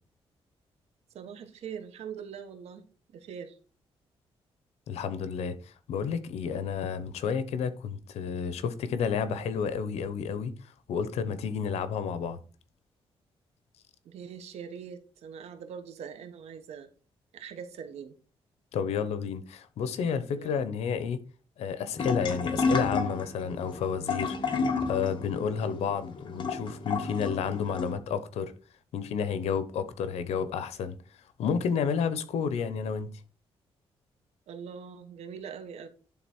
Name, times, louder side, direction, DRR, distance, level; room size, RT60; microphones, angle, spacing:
voice 1, 1.1-2.9 3.1-3.6 14.0-16.9 17.3-18.2 20.3-20.6 34.5-35.9, right 7 dB, 85° right, 1.4 m, -42 dB
voice 2, 4.9-10.5 10.9-12.4 18.7-21.2 21.6-28.5 28.9-31.0 31.4-33.1, left 6 dB, 90° left, 1.0 m, -31 dB
sound 1, 21.9-27.9, left 4 dB, 45° left, 1.9 m, -31 dB
11.0 x 3.9 x 4.5 m
cardioid pair, 100°, 11 cm